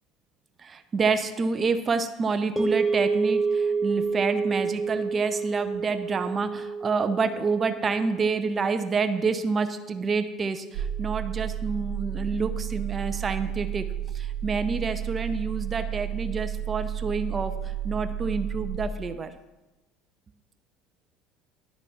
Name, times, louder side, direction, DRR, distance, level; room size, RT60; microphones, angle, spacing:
voice 1, 0.6-13.9 14.1-19.3, right 4 dB, 30° right, 9 dB, 0.6 m, -28 dB
sound 1, 2.6-10.8, right 4 dB, 5° left, 1.4 m, -29 dB
sound 2, 10.7-18.8, right 10 dB, 70° right, 1.7 m, -32 dB
11.5 x 4.0 x 7.1 m, 1.1 s
supercardioid pair, 85°, 0 cm